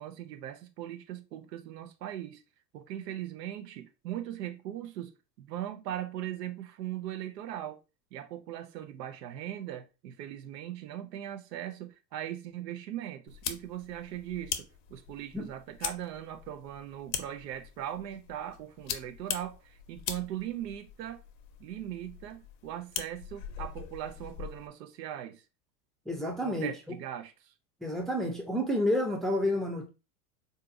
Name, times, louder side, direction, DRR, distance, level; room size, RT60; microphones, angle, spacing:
voice 1, 0.0-2.4 2.7-7.8 8.1-21.2 21.6-25.4 26.4-27.5, right 11 dB, 75° right, 0.7 m, -39 dB
sound 1, 13.3-24.7, left 9 dB, 55° left, 0.7 m, -41 dB
voice 2, 26.1-26.7 27.8-29.9, left 1 dB, ahead, 0.5 m, -29 dB
3.7 x 2.7 x 2.5 m
hypercardioid pair, 95°, 50 cm